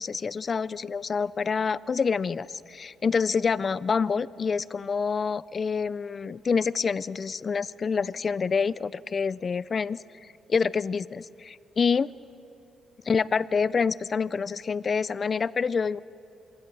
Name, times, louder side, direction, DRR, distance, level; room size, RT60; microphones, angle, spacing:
voice 1, 0.0-12.1 13.0-16.0, left 5 dB, 40° left, 19 dB, 0.4 m, -27 dB
26.0 x 23.5 x 4.7 m, 2.5 s
cardioid pair, 90°, 0 cm